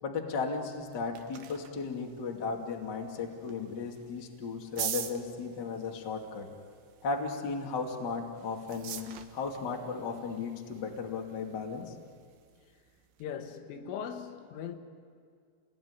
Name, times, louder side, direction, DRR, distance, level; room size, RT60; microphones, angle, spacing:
voice 1, 0.0-6.5 7.0-11.9, left 4 dB, 35° left, 2.0 m, -35 dB
sound 1, 0.7-13.3, right 10 dB, 65° right, 2.8 m, -46 dB
voice 2, 13.2-14.8, left 8 dB, 85° left, 4.1 m, -39 dB
30.0 x 20.0 x 9.7 m
omnidirectional pair, 5.6 m